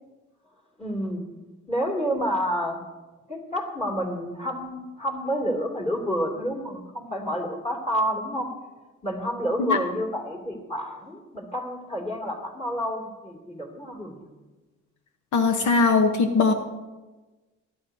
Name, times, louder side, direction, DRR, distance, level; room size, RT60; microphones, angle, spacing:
voice 1, 0.8-1.3 1.7-2.8 3.3-8.5 9.0-14.2, equal, 20° left, -2 dB, 2.6 m, -29 dB
voice 2, 15.3-16.5, left 4 dB, 70° left, 6 dB, 1.0 m, -20 dB
22.0 x 10.5 x 2.7 m, 1.2 s
cardioid pair, 90°, 30 cm